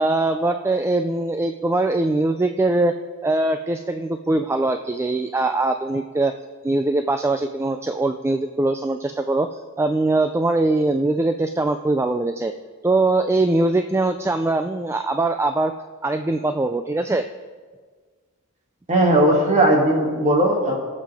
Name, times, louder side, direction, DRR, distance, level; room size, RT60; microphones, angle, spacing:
voice 1, 0.0-2.9 3.2-6.3 6.6-12.5 12.8-15.7 16.0-17.3, right 2 dB, 10° right, 7 dB, 0.3 m, -22 dB
voice 2, 18.9-20.8, right 1 dB, 35° right, -1 dB, 2.3 m, -17 dB
21.5 x 7.5 x 3.5 m, 1.5 s
head